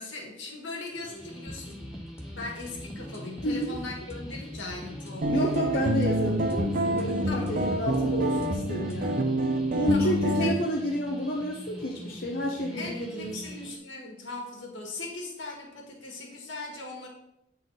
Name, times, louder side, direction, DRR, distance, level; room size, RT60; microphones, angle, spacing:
voice 1, 0.0-1.8 2.3-5.8 7.3-7.5 9.9-10.6 12.7-17.1, left 3 dB, 75° left, 0 dB, 1.7 m, -39 dB
sound 1, 1.0-13.8, equal, 5° right, 1.4 m, -44 dB
sound 2, 1.5-9.0, left 1 dB, 15° left, 0.7 m, -43 dB
voice 2, 3.4-3.8 5.3-9.3 9.7-13.4, equal, 50° left, -2 dB, 0.8 m, -30 dB
sound 3, 5.2-10.5, right 1 dB, 45° right, 0.6 m, -27 dB
7.7 x 4.2 x 3.9 m, 0.80 s
head